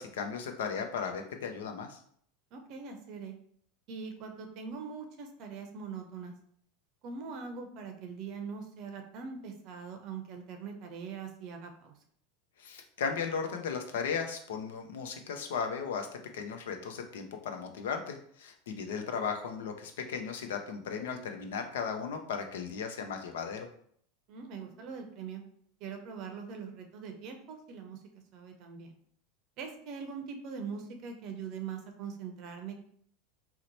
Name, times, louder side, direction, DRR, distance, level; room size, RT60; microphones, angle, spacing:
voice 1, 0.0-2.0 12.6-16.1 16.3-23.7, left 6 dB, 80° left, 5 dB, 0.5 m, -36 dB
voice 2, 2.5-3.3 3.9-6.3 7.0-11.9 24.3-25.4 25.8-28.0 28.3-29.0 29.6-32.8, right 5 dB, 55° right, 5 dB, 0.6 m, -42 dB
2.9 x 2.0 x 3.9 m, 0.63 s
hypercardioid pair, 95°, 0 cm